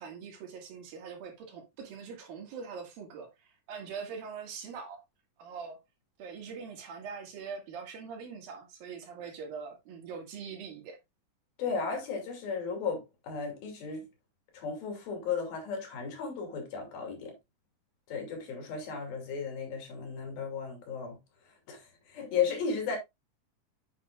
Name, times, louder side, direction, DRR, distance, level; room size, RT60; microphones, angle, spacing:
voice 1, 0.0-5.0 5.4-5.8 6.2-11.0, right 6 dB, 80° right, 3.8 m, -43 dB
voice 2, 11.6-14.1 14.5-17.3 18.1-21.2 21.7-23.0, left 6 dB, 90° left, 4.4 m, -35 dB
7.9 x 7.7 x 2.4 m
omnidirectional pair, 4.0 m